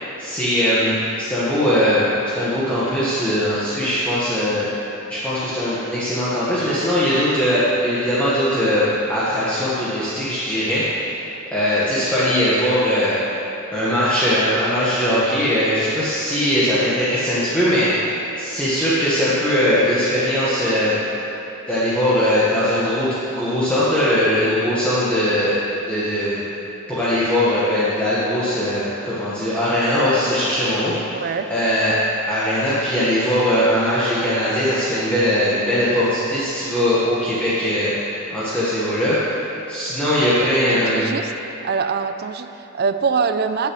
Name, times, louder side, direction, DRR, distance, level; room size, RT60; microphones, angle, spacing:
voice 1, 0.2-4.7 5.1-11.2 11.5-13.2 13.7-17.9 18.4-21.0 21.7-25.5 25.9-26.4 26.9-32.0 32.3-37.9 38.3-39.2 39.7-41.1, equal, 5° left, -12 dB, 1.4 m, -20 dB
voice 2, 31.1-31.5 40.4-41.2 41.6-43.7, right 5 dB, 45° right, 9 dB, 0.4 m, -24 dB
17.5 x 6.8 x 3.1 m, 2.9 s
head